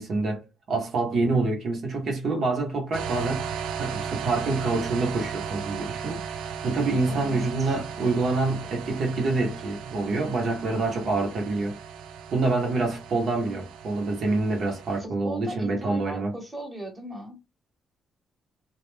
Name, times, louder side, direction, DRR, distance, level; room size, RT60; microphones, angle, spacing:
voice 1, 0.0-11.8 12.3-16.3, right 3 dB, 60° right, 0.9 m, -27 dB
sound 1, 2.9-15.0, right 7 dB, 90° right, 0.3 m, -36 dB
voice 2, 7.1-7.5 15.0-17.4, right 1 dB, 10° right, 1.1 m, -37 dB
2.2 x 2.2 x 3.1 m
cardioid pair, 100°, 0 cm